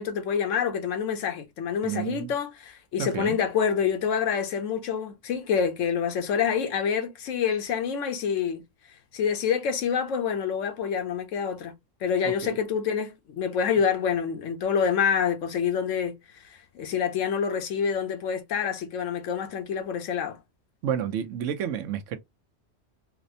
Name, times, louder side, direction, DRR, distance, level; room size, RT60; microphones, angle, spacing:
voice 1, 0.0-8.6 9.1-11.7 12.0-16.2 16.4-20.4, left 7 dB, 85° left, 1.1 m, -27 dB
voice 2, 1.8-2.3 3.0-3.4 12.2-12.6 20.8-22.2, right 9 dB, 80° right, 1.0 m, -30 dB
4.1 x 2.1 x 2.6 m
omnidirectional pair, 1.3 m